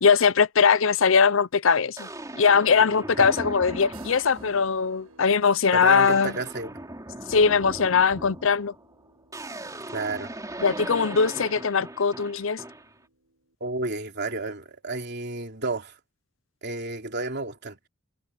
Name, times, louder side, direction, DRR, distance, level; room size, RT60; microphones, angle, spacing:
voice 1, 0.0-2.1 2.4-6.3 7.3-8.7 10.6-12.6, left 5 dB, 65° left, 0.6 m, -21 dB
sound 1, 1.1-1.2 2.0-4.8 5.3-5.6 5.8-13.0, right 1 dB, 15° right, 3.4 m, -39 dB
sound 2, 3.9-13.5, right 3 dB, 90° right, 7.9 m, -57 dB
voice 2, 5.7-6.7 9.9-10.3 13.6-16.0 16.6-17.8, right 3 dB, 50° right, 3.3 m, -31 dB
head